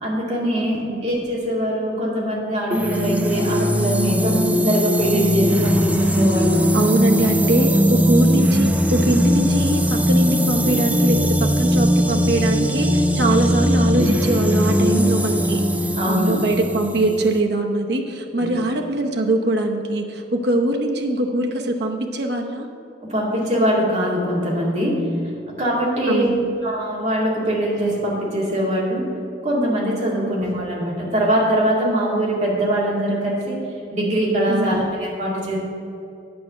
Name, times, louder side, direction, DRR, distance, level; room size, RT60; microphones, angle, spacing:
voice 1, 0.0-6.7 16.0-16.4 18.4-18.5 23.0-25.1 25.5-26.3 26.6-29.1 29.4-33.6 33.9-35.6, equal, 40° right, -4 dB, 2.3 m, -22 dB
voice 2, 0.5-1.0 6.7-15.6 16.1-22.7 26.1-26.5 30.2-30.5 34.5-34.9, right 1 dB, 60° right, 2 dB, 0.9 m, -22 dB
sound 1, 2.7-17.4, equal, 10° right, 0.4 m, -19 dB
9.6 x 5.0 x 7.6 m, 2.7 s
head